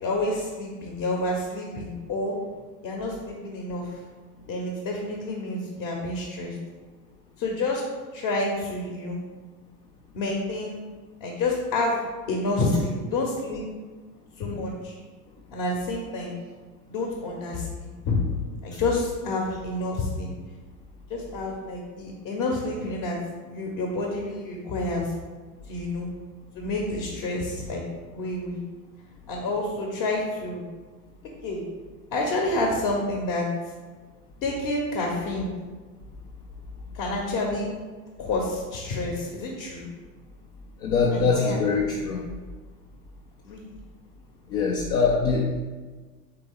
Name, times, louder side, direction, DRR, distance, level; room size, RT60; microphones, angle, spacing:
voice 1, 0.0-2.4 2.8-4.0 4.5-6.6 7.4-7.8 8.1-9.2 10.1-10.8 11.2-12.0 12.3-13.7 14.4-15.0 15.5-16.4 16.9-18.2 18.6-20.3 21.1-23.2 23.4-25.1 25.7-26.1 26.5-28.6 29.3-30.6 31.4-31.6 32.1-33.5 34.4-35.5 36.9-37.7 38.2-39.9 41.1-41.6 43.4-43.7, left 2 dB, 45° left, -1 dB, 1.0 m, -29 dB
voice 2, 40.8-42.2 44.5-45.5, left 4 dB, 75° left, -3 dB, 0.7 m, -23 dB
3.7 x 3.5 x 3.6 m, 1.4 s
hypercardioid pair, 80°, 46 cm